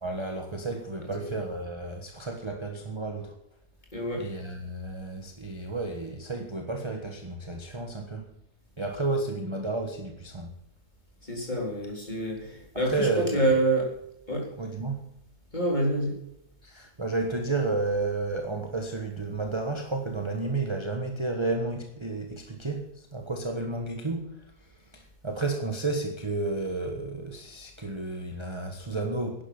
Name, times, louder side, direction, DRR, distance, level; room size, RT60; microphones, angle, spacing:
voice 1, 0.0-3.4 4.2-8.3 8.8-10.5 12.8-13.5 14.6-15.0 16.6-29.4, right 3 dB, 20° right, 1.4 m, -32 dB
voice 2, 3.9-4.3 11.2-13.9 14.3-14.5 15.5-16.2, right 1 dB, 25° left, 4.3 m, -27 dB
11.5 x 11.0 x 7.1 m
omnidirectional pair, 1.7 m